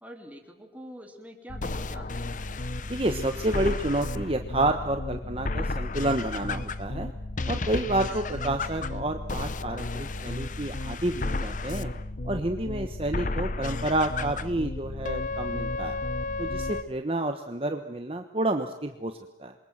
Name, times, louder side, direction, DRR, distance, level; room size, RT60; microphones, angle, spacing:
voice 1, 0.0-2.4 8.1-8.2, equal, 10° right, 3 dB, 3.0 m, -45 dB
sound 1, 1.5-16.8, left 2 dB, 45° left, 0.9 m, -32 dB
voice 2, 2.9-7.1 7.5-11.9 12.2-16.0 16.4-19.5, right 1 dB, 30° right, 6 dB, 1.2 m, -29 dB
27.5 x 22.5 x 7.5 m, 0.95 s
head